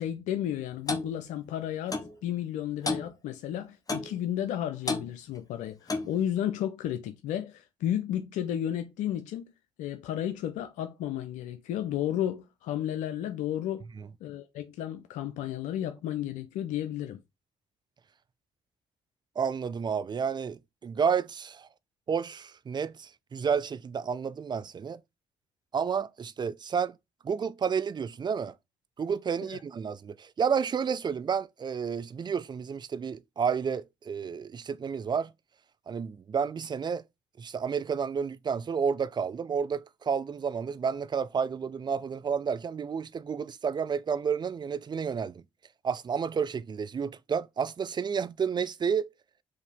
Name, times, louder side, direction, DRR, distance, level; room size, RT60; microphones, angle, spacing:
voice 1, 0.0-9.5 9.8-13.9 14.2-17.2 29.5-29.6, left 11 dB, 80° left, 0.4 m, -33 dB
Clock, 0.9-1.1 1.9-2.1 2.9-3.1 3.9-4.1 4.9-5.1 5.9-6.2, left 3 dB, 30° left, 0.9 m, -30 dB
voice 2, 19.4-21.7 22.1-25.0 25.7-26.9 27.2-28.5 29.0-35.3 35.9-37.0 37.4-45.4 45.8-49.1, right 6 dB, 35° right, 0.4 m, -30 dB
4.8 x 2.6 x 3.4 m
hypercardioid pair, 50°, 12 cm